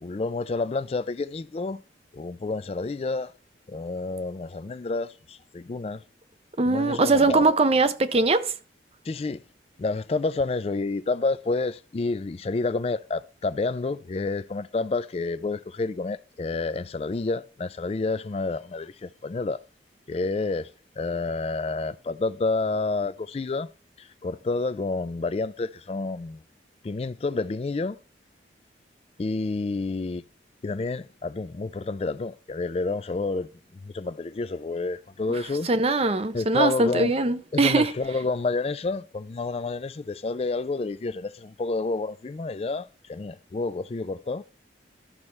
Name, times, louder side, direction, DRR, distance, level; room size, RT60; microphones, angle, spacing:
voice 1, 0.0-1.8 2.1-3.3 3.7-6.0 6.7-7.5 9.1-9.4 9.8-19.6 20.1-20.7 21.0-23.7 24.0-26.4 26.8-28.0 29.2-30.2 30.6-33.5 33.8-35.7 36.3-37.1 37.5-44.4, left 3 dB, 35° left, 0.3 m, -29 dB
voice 2, 6.6-8.5 35.6-37.9, right 3 dB, 35° right, 0.5 m, -21 dB
12.5 x 5.7 x 3.2 m
head